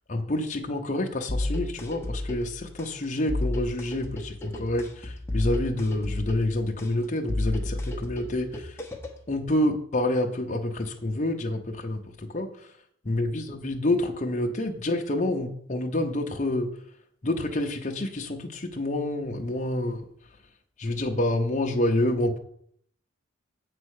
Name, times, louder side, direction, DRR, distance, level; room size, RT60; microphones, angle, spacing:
voice 1, 0.1-8.8 9.3-12.7 13.0-16.7 17.2-20.0 20.8-22.4, left 1 dB, 35° left, 1 dB, 0.7 m, -28 dB
sound 1, 1.3-9.3, left 1 dB, 10° left, 0.9 m, -32 dB
7.3 x 4.3 x 6.4 m, 0.65 s
head